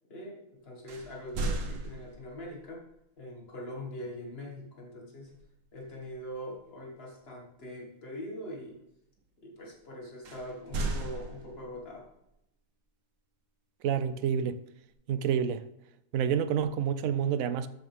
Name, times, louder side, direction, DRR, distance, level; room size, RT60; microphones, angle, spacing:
voice 1, 0.1-2.8 3.2-5.3 5.7-8.8 9.4-12.1, left 1 dB, 50° left, 2.1 m, -42 dB
sound 1, 0.9-2.5 5.3-5.6 6.0-6.2 10.2-11.9, right 2 dB, 70° right, 1.4 m, -36 dB
voice 2, 13.8-14.6 15.1-15.6 16.1-17.7, right 8 dB, 90° right, 1.0 m, -28 dB
12.5 x 6.4 x 3.5 m
omnidirectional pair, 1.4 m